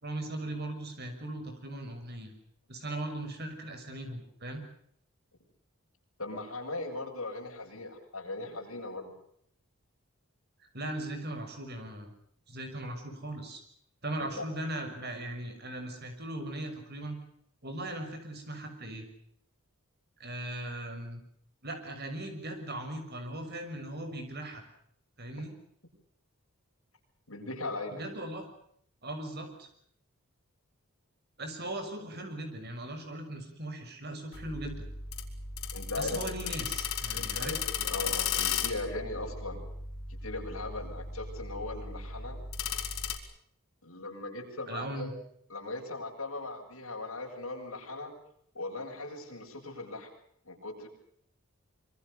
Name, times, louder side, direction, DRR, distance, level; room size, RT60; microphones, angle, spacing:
voice 1, 0.0-2.3 2.7-4.6 10.6-12.1 12.5-13.6 14.0-17.2 17.6-19.1 20.2-21.2 21.6-24.6 25.2-25.5 27.9-28.5 29.0-29.7 31.4-34.8 36.0-37.6 44.6-45.1, right 1 dB, 50° right, 6 dB, 6.2 m, -39 dB
voice 2, 6.2-9.1 14.2-14.5 27.3-28.0 35.7-36.5 37.1-39.6 40.2-42.4 43.8-45.1 45.5-48.1 48.5-50.1 50.4-50.9, left 2 dB, 70° left, 0 dB, 7.9 m, -39 dB
sound 1, 34.3-43.2, left 7 dB, 90° left, 4.0 m, -35 dB
26.0 x 24.5 x 6.8 m, 0.67 s
head